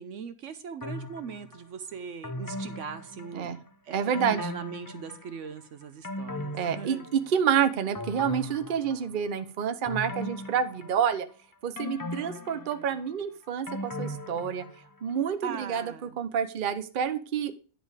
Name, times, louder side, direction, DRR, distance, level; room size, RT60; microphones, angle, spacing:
voice 1, 0.0-3.5 3.8-7.1 15.4-16.2, right 6 dB, 65° right, 10 dB, 1.0 m, -40 dB
sound 1, 0.8-1.6 2.2-3.7 4.1-5.5 5.8-7.5 7.9-9.3 9.8-11.3 11.8-15.0 15.3-15.4, left 1 dB, 25° left, 0.4 m, -38 dB
voice 2, 3.9-4.4 6.5-11.3 11.6-14.6 15.0-17.5, right 8 dB, 45° right, 10 dB, 0.8 m, -28 dB
10.0 x 5.3 x 4.8 m, 0.38 s
omnidirectional pair, 1.4 m